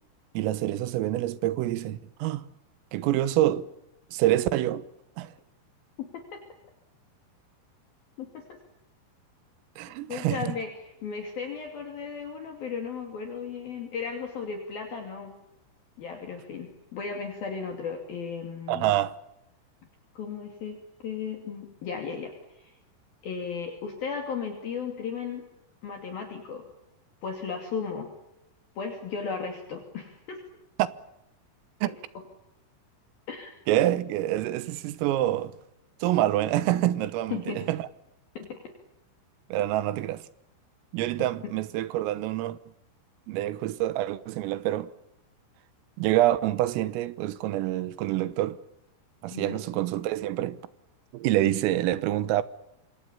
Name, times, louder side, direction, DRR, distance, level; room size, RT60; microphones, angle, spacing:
voice 1, 0.4-2.4 2.9-3.7 4.1-4.9 5.2-5.3 9.8-10.5 18.7-19.1 31.8-31.9 33.7-35.5 36.0-37.9 39.5-40.2 40.9-42.6 43.3-44.9 46.0-48.6 49.2-50.6 51.1-52.4, right 14 dB, 90° right, 3.8 m, -26 dB
voice 2, 6.0-6.4 8.2-8.6 10.1-15.3 16.0-18.9 20.2-20.8 21.0-22.8 23.2-25.4 25.8-26.7 27.2-28.1 28.8-30.4 33.3-33.5 37.3-37.7 38.4-38.7 49.3-49.6, left 6 dB, 50° left, 4.1 m, -35 dB
28.0 x 26.0 x 7.1 m
omnidirectional pair, 5.8 m